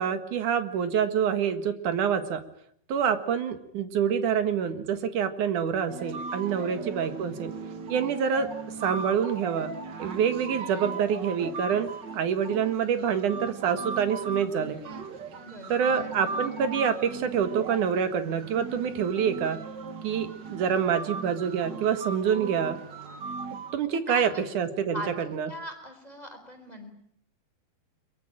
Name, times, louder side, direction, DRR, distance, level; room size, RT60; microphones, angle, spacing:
voice 1, 0.0-2.4 2.9-7.5 7.9-8.5 8.8-9.7 10.0-14.8 15.7-19.6 20.0-22.8 23.7-25.5, right 7 dB, 55° right, 9 dB, 2.7 m, -26 dB
sound 1, 5.9-23.7, right 4 dB, 90° right, 0.9 m, -38 dB
voice 2, 6.5-6.9 15.4-16.2 24.1-24.4 24.9-26.9, equal, 10° left, 7 dB, 3.9 m, -41 dB
24.0 x 23.0 x 9.0 m, 0.66 s
omnidirectional pair, 4.9 m